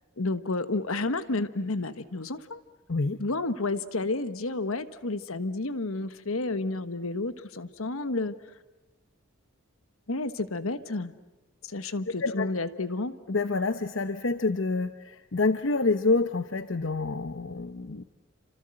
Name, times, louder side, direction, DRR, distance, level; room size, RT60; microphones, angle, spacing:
voice 1, 0.2-2.6 3.2-8.3 10.1-11.1 11.6-13.1, left 2 dB, 75° left, 12 dB, 1.3 m, -31 dB
voice 2, 13.3-18.0, left 3 dB, 60° left, 10 dB, 0.8 m, -27 dB
29.5 x 26.0 x 7.8 m, 1.1 s
head